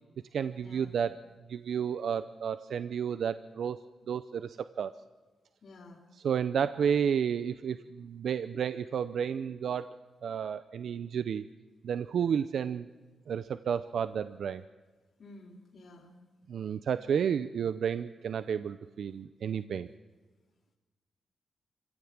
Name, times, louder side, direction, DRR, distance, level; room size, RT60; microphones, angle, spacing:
voice 1, 0.3-1.2 1.5-3.8 4.1-5.0 6.1-9.9 10.2-11.4 11.8-12.9 13.3-14.6 16.5-19.9, right 7 dB, 75° right, 13 dB, 0.6 m, -31 dB
voice 2, 5.6-6.0 15.2-16.1, left 2 dB, 55° left, 0 dB, 3.7 m, -51 dB
26.0 x 15.5 x 8.8 m, 1.3 s
cardioid pair, 85°, 0 cm